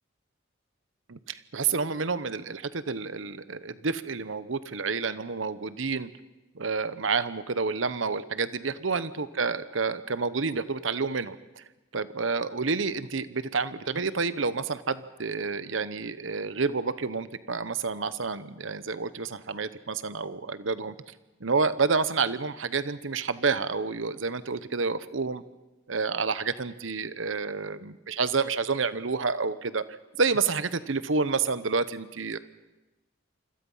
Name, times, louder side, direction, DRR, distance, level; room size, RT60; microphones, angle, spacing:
voice 1, 1.1-6.1 6.5-11.6 11.9-20.9 21.4-25.4 25.9-29.8 30.2-32.4, right 4 dB, 85° right, 14 dB, 1.0 m, -29 dB
28.0 x 26.0 x 5.7 m, 1.1 s
head